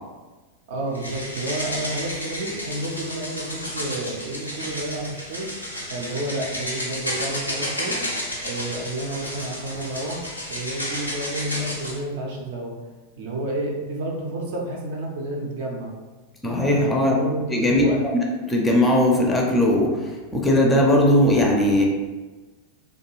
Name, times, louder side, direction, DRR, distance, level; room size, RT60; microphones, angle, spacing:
voice 1, 0.7-5.5 5.9-8.0 8.4-10.2 10.5-12.7 13.2-15.9 16.6-18.0, right 1 dB, 55° right, -1 dB, 0.5 m, -30 dB
sound 1, 0.9-12.0, equal, 85° left, 0.5 m, -32 dB
voice 2, 16.4-17.2 17.5-17.9 18.5-19.9 20.3-21.8, left 1 dB, 10° left, -1 dB, 0.4 m, -18 dB
2.3 x 2.3 x 2.9 m, 1.3 s
figure-of-eight pair, 90°, 0 cm